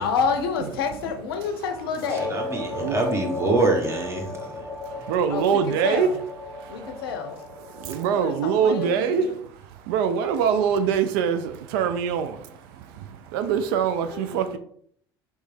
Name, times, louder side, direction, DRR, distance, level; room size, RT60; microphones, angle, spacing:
voice 1, 0.0-2.5 5.3-6.2 6.7-7.4 8.1-9.4 14.1-14.6, left 6 dB, 75° left, 0.5 m, -29 dB
sound 1, 2.0-8.3, left 2 dB, 5° left, 0.6 m, -35 dB
voice 2, 2.3-4.7, right 2 dB, 20° right, 1.1 m, -25 dB
voice 3, 4.8-6.1 6.5-6.9 7.7-9.3 9.9-14.6, right 7 dB, 65° right, 0.4 m, -24 dB
3.2 x 3.0 x 3.4 m
hypercardioid pair, 70°, 12 cm